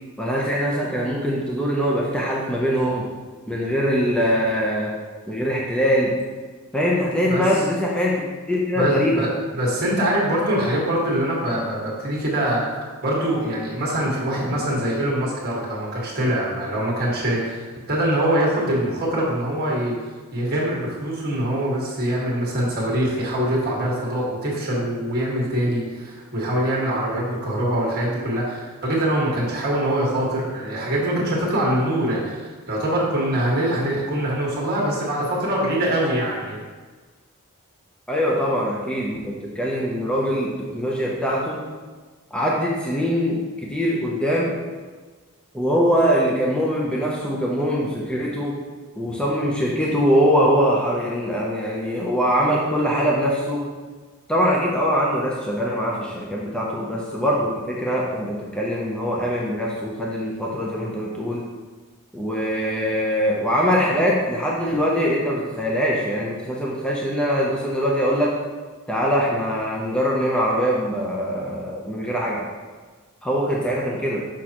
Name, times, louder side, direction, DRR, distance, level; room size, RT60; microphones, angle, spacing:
voice 1, 0.2-3.0 3.5-4.9 5.3-6.1 6.7-9.3 38.1-41.6 42.3-44.5 45.5-48.5 49.0-53.6 54.3-61.4 62.1-68.3 68.9-72.4 73.2-74.2, equal, 5° left, -4 dB, 0.7 m, -22 dB
voice 2, 8.7-9.3 9.5-12.6 13.0-19.9 20.3-36.6, right 1 dB, 45° right, -4 dB, 1.8 m, -23 dB
6.2 x 6.1 x 2.9 m, 1.4 s
head